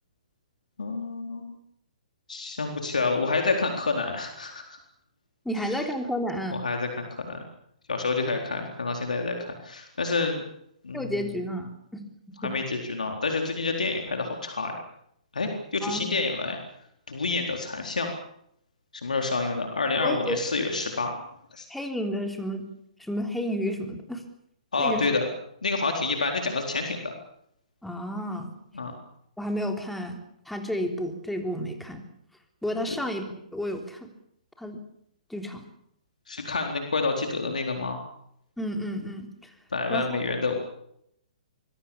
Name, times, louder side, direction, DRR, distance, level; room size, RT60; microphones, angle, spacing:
voice 1, 0.8-1.5 2.3-4.6 5.6-5.8 6.5-7.4 7.9-10.4 10.8-11.2 12.4-14.7 15.3-16.6 17.1-18.1 19.0-21.1 21.5-21.7 24.7-25.2 25.6-27.1 28.7-28.9 36.3-38.0 39.7-40.6, left 3 dB, 80° left, 3 dB, 4.0 m, -28 dB
voice 2, 5.5-6.6 10.9-12.0 12.4-12.5 15.8-16.1 20.0-20.4 21.7-22.6 23.0-24.2 24.8-25.1 27.8-28.5 29.4-32.1 32.6-34.1 34.6-34.8 35.3-35.7 38.6-39.5 39.9-40.1, equal, 5° left, 4 dB, 3.6 m, -31 dB
24.5 x 21.0 x 7.2 m, 0.74 s
hypercardioid pair, 130°, 4 cm